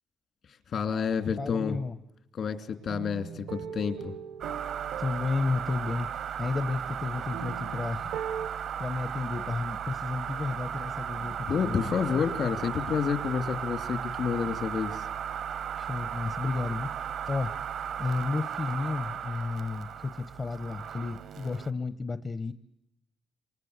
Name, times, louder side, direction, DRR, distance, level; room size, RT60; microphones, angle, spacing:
voice 1, 0.7-1.8 2.3-4.1 11.5-15.0, left 6 dB, 60° left, 8 dB, 2.8 m, -29 dB
voice 2, 1.4-2.0 5.0-8.1 8.4-11.9 15.8-17.5 18.0-22.5, left 3 dB, 35° left, 12 dB, 1.0 m, -32 dB
sound 1, 2.9-8.5, right 8 dB, 85° right, 1.3 m, -40 dB
sound 2, 4.4-21.7, right 8 dB, 70° right, 1.0 m, -36 dB
27.5 x 25.5 x 8.2 m, 0.82 s
cardioid pair, 90°, 0 cm